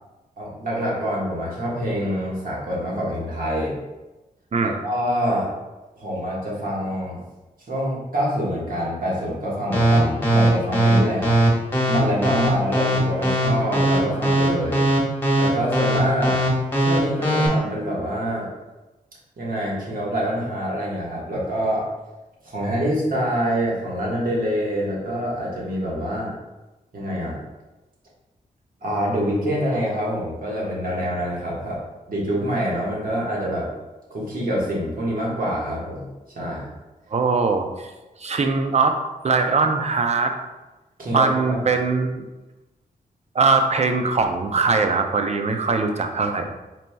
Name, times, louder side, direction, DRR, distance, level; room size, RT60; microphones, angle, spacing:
voice 1, 0.4-3.8 4.6-5.5 6.0-7.2 7.7-11.3 11.8-14.8 15.4-16.4 16.7-18.5 19.4-21.9 22.4-26.3 26.9-27.4 28.8-31.8 32.1-33.7 34.1-36.1 36.3-36.7 41.0-41.7, equal, 65° right, -5 dB, 1.5 m, -26 dB
sound 1, 9.7-17.5, right 1 dB, 15° left, 1.3 m, -19 dB
voice 2, 37.1-37.7 38.2-38.9 39.2-40.3 41.1-42.2 43.3-46.5, right 4 dB, 45° right, 5 dB, 0.5 m, -21 dB
4.3 x 4.1 x 2.3 m, 1.1 s
cardioid pair, 55°, 16 cm